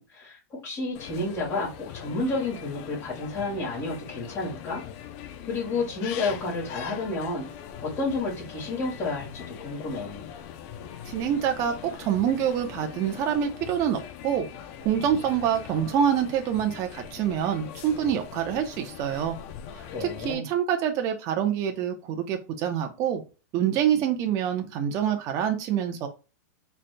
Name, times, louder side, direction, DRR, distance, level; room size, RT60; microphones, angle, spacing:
voice 1, 0.0-4.8 5.5-7.5 7.8-10.3 19.8-20.5, left 3 dB, 25° left, 2.2 m, -31 dB
sound 1, 0.9-20.3, left 9 dB, 45° left, 0.6 m, -41 dB
voice 2, 11.1-14.5 14.8-19.3 20.0-23.2 23.5-26.1, right 9 dB, 35° right, 0.8 m, -26 dB
4.0 x 3.3 x 2.3 m
hypercardioid pair, 135°, 10 cm